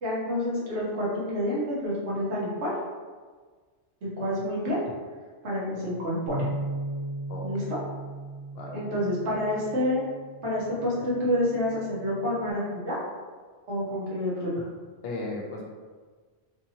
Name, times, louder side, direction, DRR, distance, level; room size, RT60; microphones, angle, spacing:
voice 1, 0.0-2.7 4.0-4.8 5.4-6.5 7.4-7.8 8.7-10.0 10.4-13.0 13.7-14.5, left 1 dB, 85° right, -7 dB, 1.4 m, -28 dB
Bass guitar, 6.3-12.5, right 1 dB, 65° right, 1.0 m, -37 dB
voice 2, 7.3-7.7 8.5-8.7 15.0-15.6, left 2 dB, 65° left, -1 dB, 0.8 m, -35 dB
3.2 x 2.8 x 2.8 m, 1.5 s
omnidirectional pair, 1.1 m